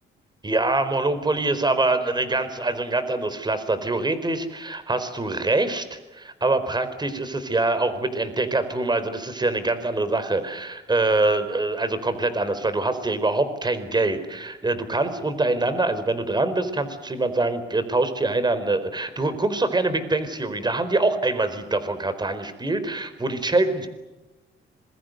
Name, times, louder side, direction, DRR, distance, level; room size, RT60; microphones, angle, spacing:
voice 1, 0.4-23.9, right 2 dB, 20° right, 11 dB, 4.4 m, -24 dB
26.5 x 22.5 x 8.0 m, 1.1 s
cardioid pair, 90°, 20 cm